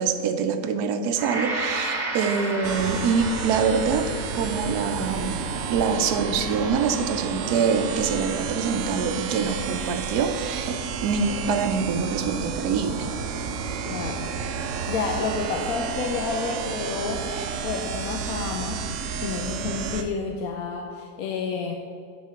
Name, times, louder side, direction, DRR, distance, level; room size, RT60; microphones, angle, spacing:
voice 1, 0.0-4.1 4.3-5.4 5.7-13.1, right 5 dB, 85° right, 8 dB, 1.2 m, -25 dB
Gong, 1.1-9.5 9.9-10.1, right 2 dB, 30° right, 1.1 m, -35 dB
sound 1, 2.6-20.0, right 6 dB, 60° right, 0.9 m, -31 dB
voice 2, 13.8-14.3 14.8-17.2 17.6-18.8 19.2-21.7, left 4 dB, 70° left, 2 dB, 1.1 m, -29 dB
9.2 x 4.4 x 6.4 m, 2.3 s
omnidirectional pair, 1.7 m